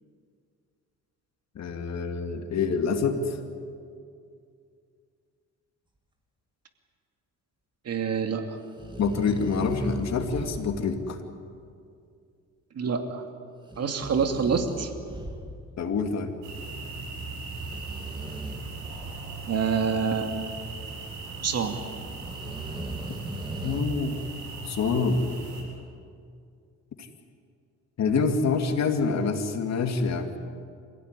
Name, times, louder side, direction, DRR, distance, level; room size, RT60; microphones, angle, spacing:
voice 1, 1.6-3.4 9.0-11.2 15.8-16.3 23.6-24.2 24.6-25.3 27.0-27.1 28.0-30.4, left 4 dB, 60° left, 5 dB, 2.6 m, -26 dB
voice 2, 7.8-8.6 12.8-13.2 13.8-14.9 19.5-20.5 21.4-21.8, right 6 dB, 55° right, 5 dB, 2.6 m, -27 dB
sound 1, 8.8-11.0 13.7-15.8 17.5-19.4 22.2-23.8, right 1 dB, 15° right, 3.1 m, -38 dB
sound 2, 16.4-25.6, right 3 dB, 90° right, 7.7 m, -38 dB
26.0 x 16.5 x 9.9 m, 2.3 s
cardioid pair, 90°, 30 cm